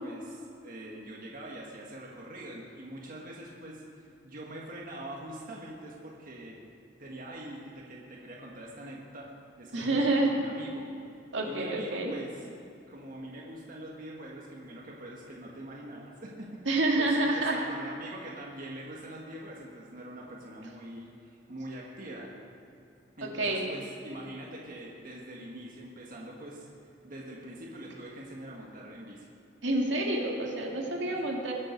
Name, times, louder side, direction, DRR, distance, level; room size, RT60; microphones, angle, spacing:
voice 1, 0.0-6.6 7.0-9.3 9.6-10.9 11.4-12.4 12.9-16.6 17.0-22.3 23.2-29.3 31.1-31.2, right 1 dB, 50° right, -3 dB, 1.6 m, -43 dB
voice 2, 9.7-10.3 11.3-12.1 16.7-17.6 23.2-23.7 29.6-31.5, right 2 dB, 80° right, -1 dB, 2.1 m, -28 dB
21.5 x 7.5 x 5.3 m, 2.7 s
head